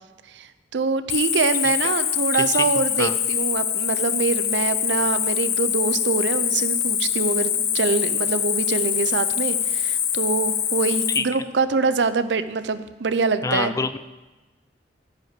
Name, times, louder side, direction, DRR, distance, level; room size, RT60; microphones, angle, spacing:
voice 1, 0.3-13.7, right 4 dB, 80° right, 13 dB, 0.6 m, -24 dB
Cricket, 1.1-11.2, left 9 dB, 60° left, 0.9 m, -24 dB
voice 2, 2.3-2.7 3.0-3.2 11.2-11.3 13.4-14.0, left 4 dB, 20° left, 13 dB, 0.3 m, -25 dB
10.0 x 5.3 x 7.6 m, 1.2 s
head